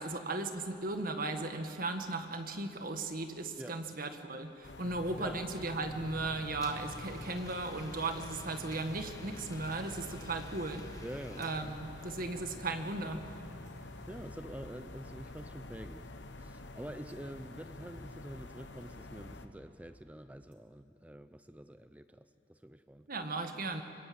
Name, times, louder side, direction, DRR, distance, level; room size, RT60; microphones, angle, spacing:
voice 1, 0.0-11.0 11.4-13.2 23.1-23.8, right 2 dB, 50° right, 6 dB, 1.7 m, -36 dB
sound 1, 4.6-19.5, left 2 dB, 75° left, 1.2 m, -48 dB
sound 2, 6.0-15.1 15.4-15.5 15.8-16.3 16.7-16.8 17.1-17.2 17.5-17.6 17.9-18.5 18.8-18.9 19.2-19.8 20.1-20.2 20.5-20.6, equal, 25° right, 3.3 m, -57 dB
Domestic sounds home sounds, 6.6-12.3, left 3 dB, 20° left, 1.5 m, -54 dB
voice 2, 11.0-11.7 13.8-16.1 16.4-23.1, right 1 dB, 10° right, 10 dB, 0.6 m, -47 dB
25.0 x 21.0 x 8.7 m, 2.6 s
head